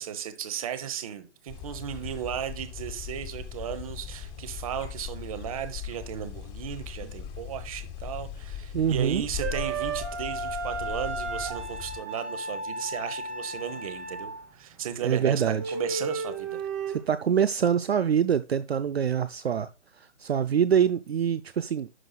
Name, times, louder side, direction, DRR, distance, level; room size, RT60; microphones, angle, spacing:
voice 1, 0.0-16.6, right 9 dB, 30° right, 1.0 m, -35 dB
sound 1, 1.5-12.0, left 9 dB, 15° left, 1.5 m, -39 dB
voice 2, 8.7-9.2 15.0-15.7 16.9-19.7 20.2-21.9, right 8 dB, 65° right, 0.5 m, -25 dB
sound 2, 9.4-14.5 14.9-15.0 15.5-17.1, right 3 dB, 10° right, 0.5 m, -34 dB
11.0 x 6.1 x 2.3 m
figure-of-eight pair, 135°, 35 cm